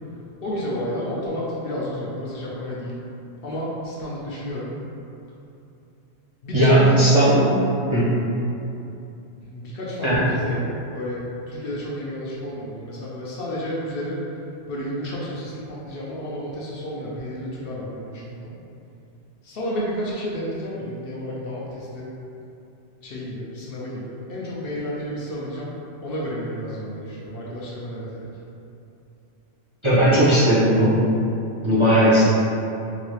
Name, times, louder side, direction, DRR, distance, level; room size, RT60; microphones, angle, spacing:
voice 1, 0.4-3.0 3.2-4.7 6.4-6.9 9.4-14.2 14.7-18.6 19.4-22.1 23.0-25.7 26.0-28.3, equal, 60° left, -6 dB, 0.7 m, -31 dB
voice 2, 6.5-7.6 7.9-8.1 10.0-10.2 29.8-31.0 31.6-32.2, right 1 dB, 35° right, -10 dB, 0.5 m, -17 dB
3.9 x 2.3 x 3.0 m, 2.7 s
omnidirectional pair, 1.2 m